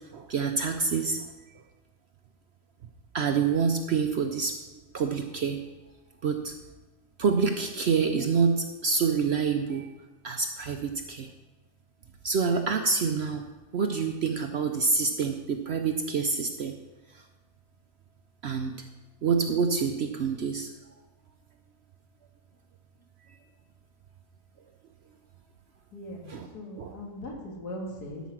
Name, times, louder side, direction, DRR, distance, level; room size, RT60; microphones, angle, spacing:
voice 1, 0.1-1.3 3.1-4.6 4.9-5.6 6.2-6.5 7.2-9.9 10.2-11.3 12.2-13.4 13.7-16.8 18.4-18.7 19.2-20.7 26.3-26.5 26.8-27.0, right 5 dB, 60° right, 6 dB, 0.7 m, -27 dB
voice 2, 25.9-28.2, left 1 dB, 90° left, -2 dB, 2.6 m, -39 dB
12.5 x 5.1 x 5.9 m, 1.1 s
omnidirectional pair, 1.6 m